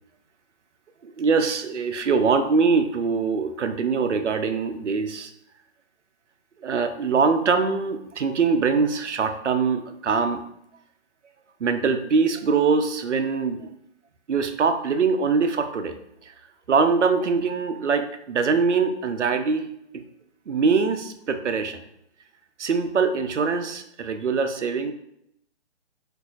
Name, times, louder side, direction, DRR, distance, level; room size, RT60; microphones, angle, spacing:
voice 1, 1.0-5.3 6.6-10.4 11.6-13.7 14.3-16.0 16.2-16.3 16.7-19.7 19.9-20.0 20.5-21.8 22.6-24.9, right 5 dB, 85° right, 8 dB, 0.6 m, -23 dB
7.8 x 2.7 x 2.4 m, 0.76 s
figure-of-eight pair, 145°, 34 cm